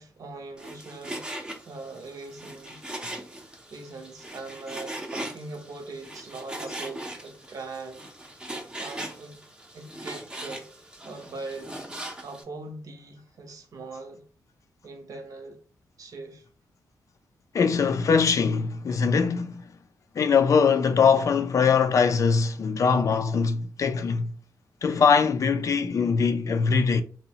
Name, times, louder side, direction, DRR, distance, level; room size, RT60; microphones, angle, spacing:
voice 1, 0.0-2.8 3.7-8.0 8.8-9.4 9.7-10.7 11.0-11.7 12.2-14.2 14.8-15.6 16.0-16.4, right 3 dB, 60° right, 0.6 m, -41 dB
Frying (food), 0.6-12.4, right 1 dB, 10° right, 0.6 m, -40 dB
voice 2, 17.5-19.6 20.2-24.3 24.8-27.0, left 5 dB, 50° left, 0.3 m, -22 dB
2.7 x 2.1 x 2.8 m
cardioid pair, 80°, 7 cm